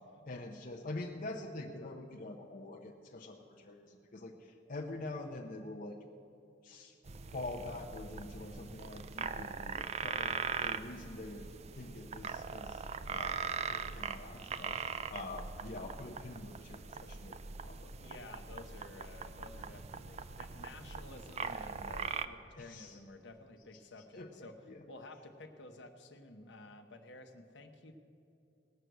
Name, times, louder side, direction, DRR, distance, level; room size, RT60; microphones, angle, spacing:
voice 1, 0.3-6.0 6.6-7.0 7.3-11.5 11.7-13.4 13.7-14.8 15.1-17.9 22.6-23.0 24.2-24.3 24.7-24.8, left 2 dB, 50° left, 2 dB, 0.7 m, -45 dB
sound 1, 7.1-22.2, right 5 dB, 35° right, 0.4 m, -41 dB
voice 2, 13.9-14.8 18.0-24.6 24.9-27.9, left 2 dB, 70° left, 6 dB, 1.0 m, -52 dB
18.5 x 6.2 x 8.1 m, 2.7 s
head